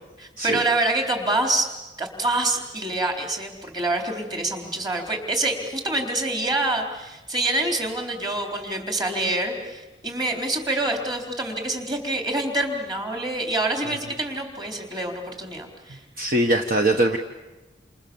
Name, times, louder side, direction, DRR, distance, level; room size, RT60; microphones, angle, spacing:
voice 1, 0.2-1.7 2.0-16.0, right 2 dB, 25° right, 3 dB, 4.1 m, -26 dB
voice 2, 16.2-17.2, right 1 dB, 50° right, 3 dB, 1.4 m, -21 dB
29.0 x 28.5 x 7.2 m, 1.1 s
head